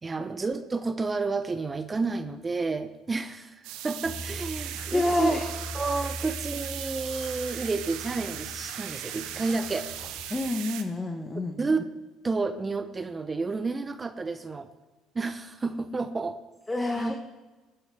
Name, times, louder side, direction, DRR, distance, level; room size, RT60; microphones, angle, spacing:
voice 1, 0.0-5.4 5.7-9.9 11.6-12.0 12.2-14.7 15.1-16.4 16.9-17.1, right 3 dB, 30° right, 10 dB, 0.9 m, -30 dB
sound 1, 3.6-10.8, right 12 dB, 70° right, 0.9 m, -38 dB
sound 2, 4.0-10.4, left 1 dB, 50° left, 3.3 m, -41 dB
voice 2, 4.9-5.4 10.3-11.5 16.7-17.1, left 2 dB, 15° left, 3 dB, 1.4 m, -27 dB
19.0 x 10.0 x 3.5 m, 1.2 s
hypercardioid pair, 60°, 0 cm